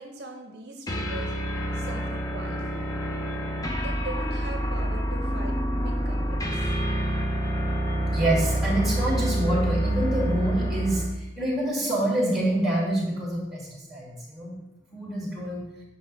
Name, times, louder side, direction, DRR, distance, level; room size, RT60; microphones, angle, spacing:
voice 1, 0.0-1.3 1.7-2.8 3.8-6.7, right 2 dB, 55° right, 4 dB, 0.7 m, -40 dB
sound 1, 0.9-11.2, right 1 dB, 20° left, 0.7 m, -27 dB
voice 2, 8.1-14.5 14.9-15.6, right 1 dB, ahead, -3 dB, 2.4 m, -27 dB
9.6 x 5.5 x 3.4 m, 0.95 s
head